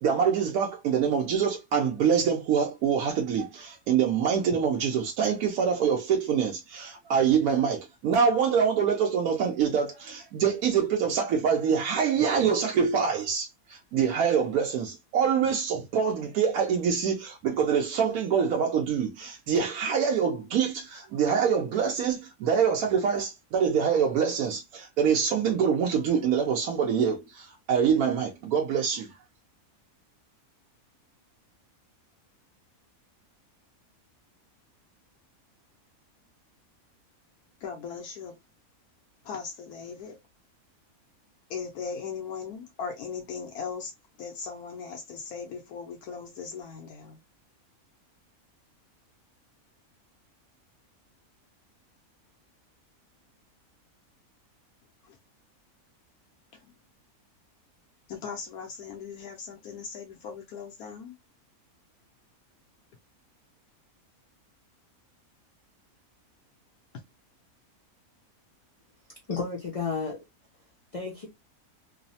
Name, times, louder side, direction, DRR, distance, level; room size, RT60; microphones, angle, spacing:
voice 1, 0.0-29.1, right 7 dB, 80° right, 1.1 m, -25 dB
voice 2, 37.6-38.3 39.2-40.2 41.5-43.9 44.2-47.2 55.0-55.2 56.5-56.7 58.1-61.2, left 6 dB, 90° left, 1.1 m, -38 dB
voice 3, 69.3-70.2 70.9-71.3, left 5 dB, 60° left, 0.3 m, -32 dB
3.1 x 2.0 x 2.6 m
omnidirectional pair, 1.5 m